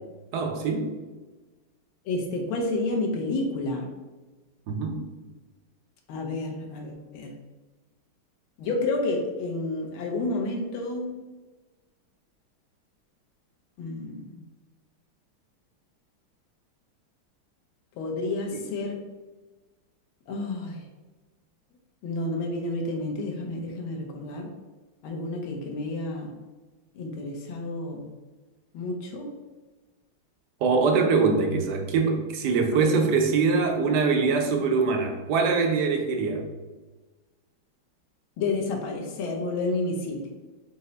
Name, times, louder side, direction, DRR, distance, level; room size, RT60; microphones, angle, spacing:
voice 1, 0.3-0.9 4.7-5.0 18.5-18.6 30.6-36.4, right 4 dB, 70° right, 3 dB, 1.0 m, -23 dB
voice 2, 2.0-3.9 6.1-7.3 8.6-11.1 13.8-14.4 18.0-19.0 20.3-20.8 22.0-24.5 25.0-26.3 26.9-28.1 28.7-29.3 32.7-32.9 38.4-40.3, left 2 dB, 80° left, 1 dB, 1.4 m, -30 dB
5.5 x 2.0 x 3.8 m, 1.2 s
omnidirectional pair, 2.3 m